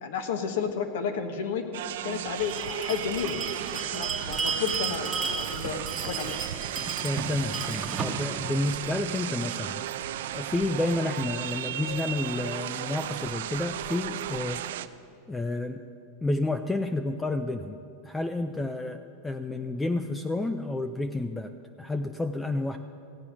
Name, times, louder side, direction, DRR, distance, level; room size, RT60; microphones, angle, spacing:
voice 1, 0.0-1.6 2.0-3.4 3.7-5.8 6.1-6.6, left 6 dB, 75° left, 7 dB, 1.2 m, -32 dB
sound 1, 1.7-14.9, right 12 dB, 80° right, 0.4 m, -35 dB
Bell, 2.4-9.6, right 5 dB, 20° right, 1.1 m, -34 dB
voice 2, 7.0-9.8 10.3-14.6 15.3-15.8 16.2-17.8 18.0-21.5 21.8-22.8, left 2 dB, 10° left, 8 dB, 0.4 m, -30 dB
15.5 x 8.3 x 6.0 m, 2.6 s
supercardioid pair, 145°, 0 cm